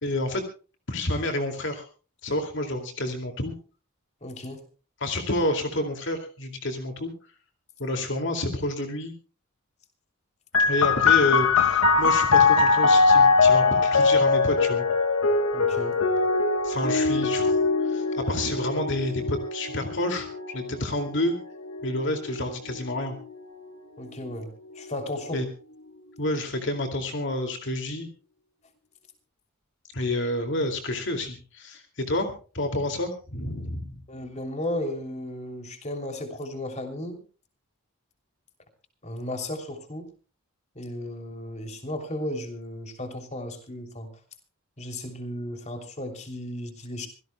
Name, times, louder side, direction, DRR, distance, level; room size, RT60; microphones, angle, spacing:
voice 1, 0.0-0.4 0.9-1.9 2.2-3.6 5.0-7.1 7.8-9.1 10.6-14.9 16.6-21.4 21.8-23.2 25.3-25.5 26.2-28.1 29.9-34.0, left 1 dB, 60° left, 5 dB, 2.4 m, -29 dB
voice 2, 4.2-4.6 7.9-8.0 15.5-16.0 24.0-25.4 34.1-37.2 39.0-40.1 40.7-44.1 44.8-47.1, left 1 dB, 30° left, 5 dB, 3.0 m, -35 dB
sound 1, 10.5-23.8 24.6-25.4, left 4 dB, 90° left, 2.1 m, -22 dB
25.5 x 17.0 x 2.2 m, 0.37 s
head